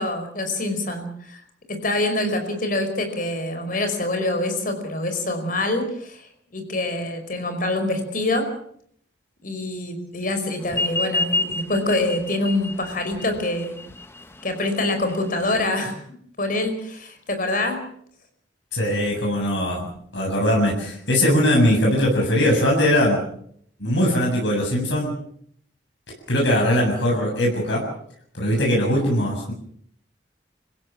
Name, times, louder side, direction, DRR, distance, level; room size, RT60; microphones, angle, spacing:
voice 1, 0.0-1.4 1.7-8.5 9.4-13.8 14.4-16.0 16.4-17.8, left 2 dB, 50° left, 6 dB, 5.2 m, -25 dB
sound 1, 10.7-15.7, left 2 dB, 15° left, 1.4 m, -29 dB
voice 2, 18.7-23.2 23.8-25.1 26.3-27.9 28.3-29.5, equal, 90° left, -1 dB, 7.5 m, -20 dB
27.5 x 16.5 x 7.4 m, 0.65 s
head